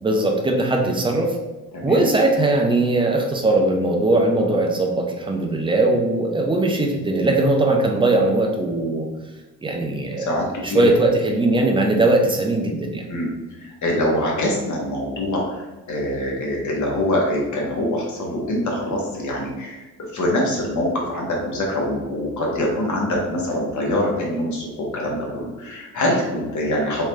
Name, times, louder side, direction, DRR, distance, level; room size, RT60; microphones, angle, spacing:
voice 1, 0.0-1.3 1.8-9.1 9.6-10.4 10.6-13.1, right 2 dB, 10° right, 1 dB, 0.6 m, -20 dB
voice 2, 1.7-2.0 10.2-10.8 13.1-13.3 13.6-15.4 15.9-19.8 20.1-27.0, left 1 dB, 35° left, -2 dB, 1.3 m, -24 dB
3.8 x 3.1 x 3.2 m, 1.1 s
figure-of-eight pair, 55°, 49 cm